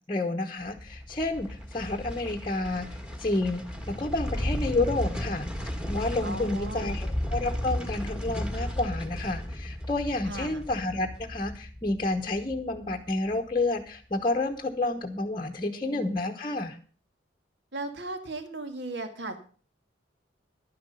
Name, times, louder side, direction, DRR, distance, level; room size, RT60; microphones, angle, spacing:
voice 1, 0.1-5.5 5.9-16.8, left 2 dB, 25° left, 4 dB, 1.0 m, -30 dB
sound 1, 0.6-13.8 14.1-14.2, left 1 dB, 5° right, 1.7 m, -35 dB
voice 2, 6.2-7.0 10.2-10.6 15.6-16.1 17.7-19.4, right 2 dB, 60° right, 7 dB, 2.1 m, -37 dB
11.5 x 10.5 x 5.5 m, 0.40 s
head